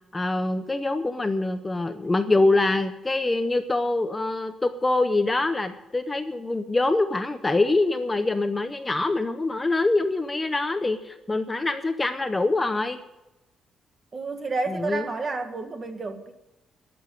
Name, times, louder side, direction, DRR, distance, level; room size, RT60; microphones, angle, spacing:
voice 1, 0.1-13.0 14.7-15.1, left 2 dB, 15° left, 9 dB, 0.7 m, -24 dB
voice 2, 14.1-16.3, right 3 dB, 30° right, 7 dB, 1.5 m, -30 dB
13.0 x 7.0 x 9.1 m, 0.97 s
cardioid pair, 145°, 0 cm